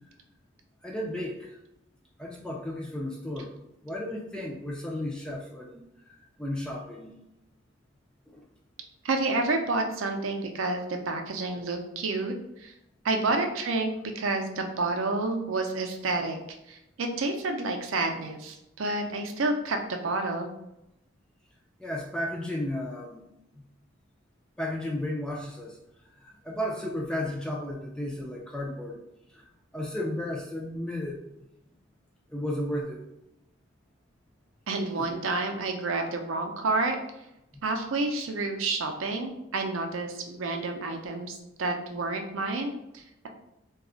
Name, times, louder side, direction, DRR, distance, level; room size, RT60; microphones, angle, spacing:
voice 1, 0.8-1.6 2.2-3.5 3.8-7.1 8.3-8.4 21.8-23.3 24.6-25.8 26.2-29.0 29.3-29.5 29.7-31.2 32.3-33.0 35.0-35.1, left 1 dB, 5° left, -1 dB, 0.3 m, -34 dB
voice 2, 9.0-12.7 13.0-13.9 14.2-16.4 16.7-20.5 34.7-37.0 37.6-43.3, right 3 dB, 80° right, 4 dB, 0.5 m, -29 dB
2.3 x 2.1 x 3.7 m, 0.85 s
head